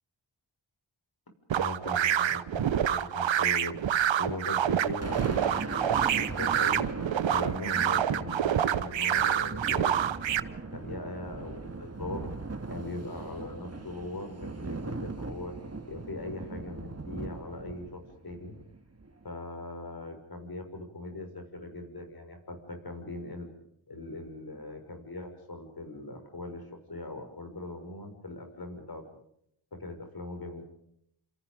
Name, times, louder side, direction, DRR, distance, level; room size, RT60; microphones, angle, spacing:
voice 1, 1.5-6.9 7.3-10.1 10.5-12.3 12.7-15.5 15.9-18.5 19.2-23.5 23.9-26.6 26.9-29.0 29.7-30.6, left 2 dB, 50° left, 5 dB, 6.3 m, -40 dB
sound 1, 1.5-10.4, right 9 dB, 75° right, 0.9 m, -27 dB
Thunder, 4.9-19.2, right 3 dB, 35° right, 2.1 m, -39 dB
27.5 x 27.5 x 5.3 m, 0.71 s
cardioid pair, 60°, 45 cm